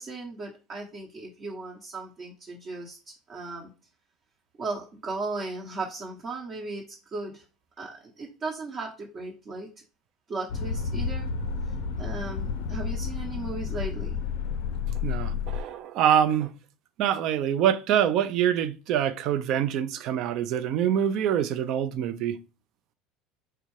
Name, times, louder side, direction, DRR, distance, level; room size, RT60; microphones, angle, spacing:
voice 1, 0.0-3.7 4.6-7.4 7.8-9.7 10.3-11.3 11.6-14.3, right 3 dB, 40° right, 0.9 m, -36 dB
sound 1, 10.5-15.6, left 6 dB, 75° left, 0.4 m, -31 dB
voice 2, 15.0-16.5 17.0-22.3, right 9 dB, 60° right, 0.4 m, -25 dB
4.4 x 2.4 x 3.1 m
hypercardioid pair, 80°, 0 cm